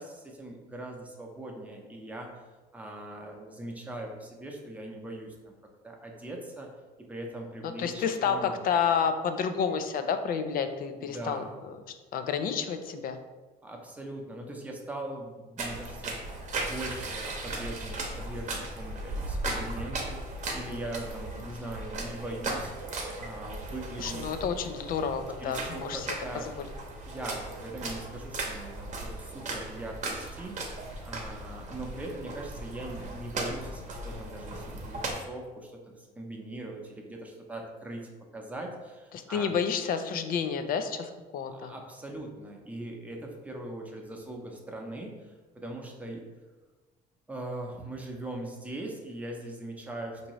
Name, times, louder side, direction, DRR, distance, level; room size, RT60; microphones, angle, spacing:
voice 1, 0.0-2.4 2.7-5.6 5.8-6.7 7.1-8.7 10.9-11.6 13.6-16.2 16.5-22.7 23.2-24.2 25.4-26.5 27.0-39.5 41.5-46.2 47.3-50.3, right 1 dB, 10° right, 0 dB, 0.7 m, -41 dB
voice 2, 7.8-11.8 12.1-13.2 24.0-26.1 26.3-26.7 39.1-41.7, left 6 dB, 55° left, 8 dB, 0.4 m, -30 dB
sound 1, 15.6-35.1, right 2 dB, 45° right, 0.8 m, -37 dB
4.5 x 2.7 x 3.0 m, 1.3 s
cardioid pair, 110°, 17 cm